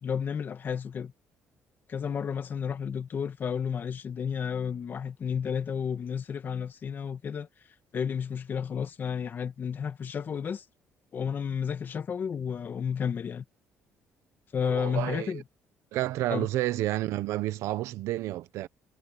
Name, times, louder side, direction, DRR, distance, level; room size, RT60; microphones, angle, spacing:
voice 1, 0.0-1.1 1.9-7.5 7.9-10.6 11.1-13.4 14.5-15.4 16.3-16.5, left 7 dB, 45° left, 2.1 m, -32 dB
voice 2, 14.6-15.4 15.9-18.7, right 15 dB, 85° right, 1.1 m, -30 dB
cardioid pair, 115°, 5 cm